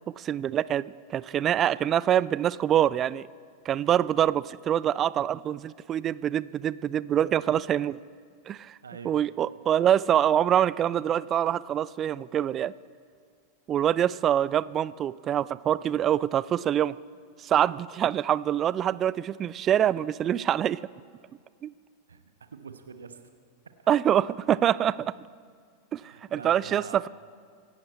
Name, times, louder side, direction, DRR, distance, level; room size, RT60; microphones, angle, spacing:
voice 1, 0.2-3.3 3.7-8.0 8.5-8.7 9.0-12.7 13.7-17.0 17.4-20.8 21.6-21.7 23.9-25.1 25.9-26.0 26.3-27.1, right 10 dB, 30° right, 20 dB, 0.3 m, -25 dB
voice 2, 8.8-9.2 22.1-23.2 26.0-27.0, right 5 dB, 70° right, 8 dB, 1.1 m, -45 dB
25.0 x 11.0 x 4.2 m, 2.1 s
figure-of-eight pair, 90°, 0 cm